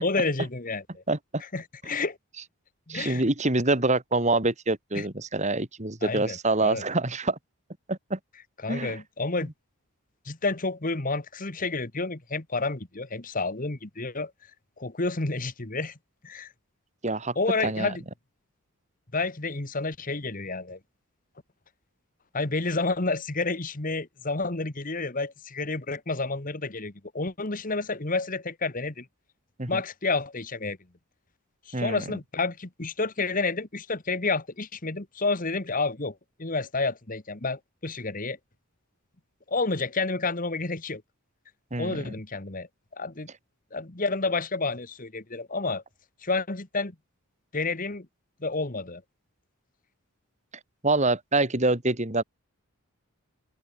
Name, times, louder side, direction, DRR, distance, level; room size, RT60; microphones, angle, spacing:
voice 1, 0.0-1.0 1.4-2.2 2.9-3.3 4.9-5.0 6.0-6.8 8.6-9.5 10.2-14.3 14.8-15.9 16.2-16.5 17.3-18.0 19.1-20.8 22.3-29.1 29.7-30.8 31.7-38.4 39.5-41.0 41.8-42.7 42.9-43.3 43.7-45.8 46.2-46.9 47.5-48.1 48.4-49.0, left 3 dB, 40° left, 1.6 m, -30 dB
voice 2, 1.1-1.4 2.9-7.4 7.9-8.2 8.7-8.9 17.0-17.3 17.6-17.9 29.6-29.8 31.7-32.0 41.7-42.1 50.8-52.2, right 2 dB, 30° right, 2.4 m, -26 dB
open air
head